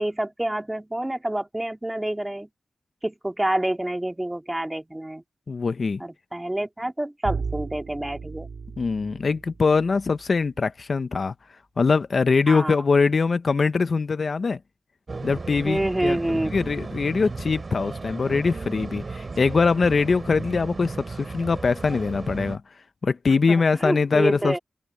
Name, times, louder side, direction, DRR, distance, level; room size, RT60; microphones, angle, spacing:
voice 1, 0.0-2.5 3.0-5.2 6.0-8.5 12.5-12.8 15.6-16.5 23.5-24.6, right 1 dB, 15° right, 2.7 m, -27 dB
voice 2, 5.5-6.0 8.8-11.3 11.8-14.6 15.2-22.6 23.0-24.6, left 4 dB, 60° left, 0.7 m, -22 dB
Bowed string instrument, 7.2-10.3, right 5 dB, 70° right, 1.9 m, -35 dB
sound 1, 15.1-22.6, right 3 dB, 50° right, 3.8 m, -35 dB
cardioid pair, 65°, 0 cm